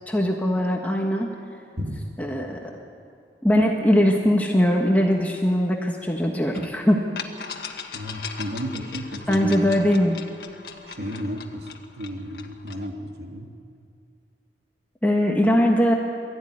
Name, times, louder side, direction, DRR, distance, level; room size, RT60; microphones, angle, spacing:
voice 1, 0.1-1.3 2.2-2.7 3.4-7.0 9.3-10.2 15.0-15.9, equal, 10° left, 0 dB, 1.4 m, -21 dB
sound 1, 6.5-6.7 7.2-12.9, left 6 dB, 65° left, 1.6 m, -38 dB
voice 2, 7.9-9.7 10.8-11.7 12.0-13.5, equal, 70° right, 2 dB, 2.4 m, -32 dB
22.5 x 14.0 x 9.7 m, 2.4 s
head